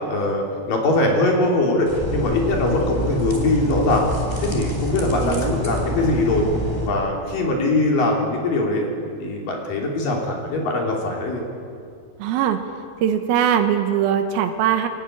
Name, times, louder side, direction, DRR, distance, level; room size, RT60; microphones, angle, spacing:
voice 1, 0.1-4.0 4.4-6.4 6.8-8.9 9.2-11.4, left 2 dB, 55° left, 0 dB, 4.6 m, -21 dB
sound 1, 1.9-6.9, equal, 5° left, 2.9 m, -27 dB
voice 2, 5.2-5.5 12.2-12.6 13.0-14.9, right 9 dB, 75° right, 5 dB, 2.7 m, -21 dB
22.0 x 17.5 x 9.9 m, 2.4 s
omnidirectional pair, 4.9 m